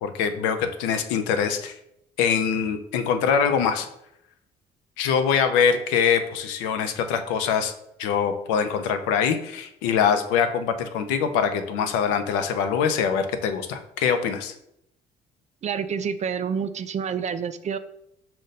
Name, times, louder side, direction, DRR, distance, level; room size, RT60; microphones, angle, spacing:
voice 1, 0.0-1.8 2.2-3.9 5.0-7.7 8.0-14.5, left 7 dB, 90° left, 8 dB, 0.5 m, -23 dB
voice 2, 15.6-17.8, right 7 dB, 40° right, 11 dB, 0.4 m, -28 dB
5.1 x 2.2 x 3.9 m, 0.78 s
supercardioid pair, 65°, 19 cm